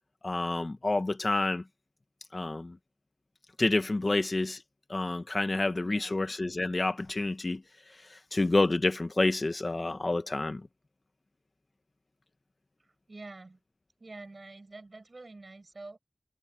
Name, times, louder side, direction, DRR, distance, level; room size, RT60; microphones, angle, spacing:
voice 1, 0.2-1.6 2.3-2.8 3.6-4.6 4.9-7.6 8.3-10.6, left 2 dB, 65° left, 1.5 m, -28 dB
voice 2, 5.8-6.2 12.8-13.6 14.0-16.0, right 2 dB, 75° right, 6.8 m, -47 dB
wide cardioid pair, 45°, 0 cm